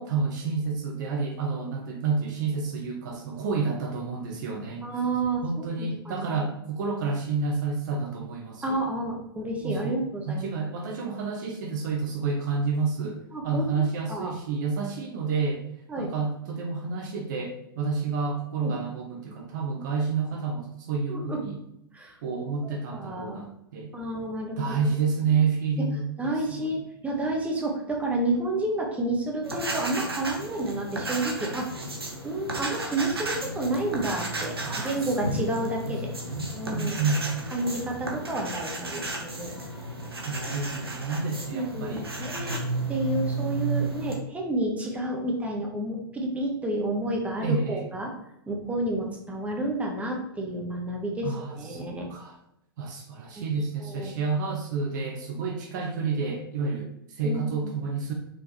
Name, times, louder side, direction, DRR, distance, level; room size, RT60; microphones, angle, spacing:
voice 1, 0.0-4.9 5.4-8.8 9.6-15.6 16.0-21.6 22.2-23.9 24.6-26.8 34.6-35.5 35.9-36.0 36.2-37.4 40.2-42.1 47.4-47.8 51.2-52.4 52.8-58.1, right 4 dB, 50° right, 2 dB, 1.1 m, -30 dB
voice 2, 4.8-6.5 8.6-10.5 13.3-14.3 15.9-16.1 18.6-18.7 21.1-21.4 21.9-22.1 22.6-23.4 23.9-24.9 25.3-25.4 26.2-31.7 32.2-36.1 36.5-37.0 37.5-39.5 40.5-40.6 41.5-42.6 42.9-48.1 48.5-52.1 53.3-53.5 53.9-54.1 57.2-57.7, right 1 dB, 10° right, 0 dB, 1.5 m, -30 dB
sound 1, 29.4-44.2, right 2 dB, 80° right, 1.4 m, -33 dB
6.3 x 4.7 x 3.2 m, 0.80 s
figure-of-eight pair, 105°, 13 cm